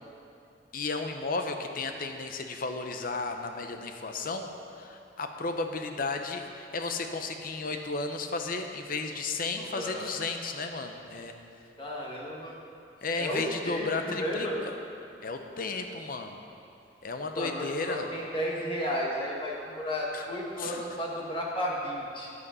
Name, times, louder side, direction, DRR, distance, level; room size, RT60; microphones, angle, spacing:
voice 1, 0.7-11.3 13.0-14.5 15.2-16.4 17.0-18.1 20.1-20.2 20.6-20.8, left 3 dB, 50° left, 6 dB, 0.7 m, -34 dB
voice 2, 9.6-10.0 11.8-12.6 13.2-14.6 17.4-22.3, equal, 30° left, -3 dB, 1.2 m, -33 dB
9.8 x 8.1 x 5.6 m, 2.6 s
head